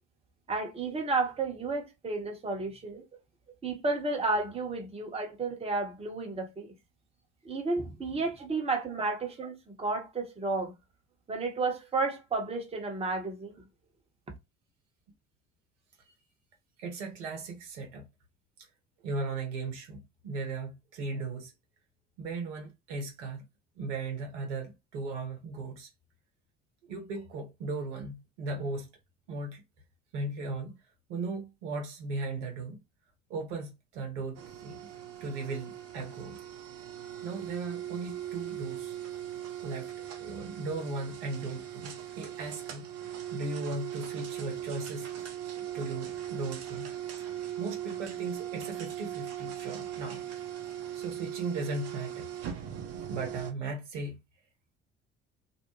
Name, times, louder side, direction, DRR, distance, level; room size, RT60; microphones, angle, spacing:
voice 1, 0.5-3.1 3.6-6.7 7.4-10.7 11.3-13.6, right 3 dB, 15° right, 0.9 m, -32 dB
voice 2, 16.8-18.1 19.0-21.5 22.2-23.4 23.8-25.9 26.8-28.9 29.3-29.6 30.1-30.8 31.1-32.8 33.3-34.9 35.2-36.4 37.2-39.0 39.6-39.9 40.2-42.9 43.3-45.1 45.7-46.9 47.2-50.2 50.9-52.3 53.1-54.2, right 3 dB, 70° right, 0.9 m, -37 dB
sound 1, 34.3-53.5, right 11 dB, 45° right, 0.7 m, -39 dB
2.5 x 2.1 x 3.0 m
figure-of-eight pair, 55°, 36 cm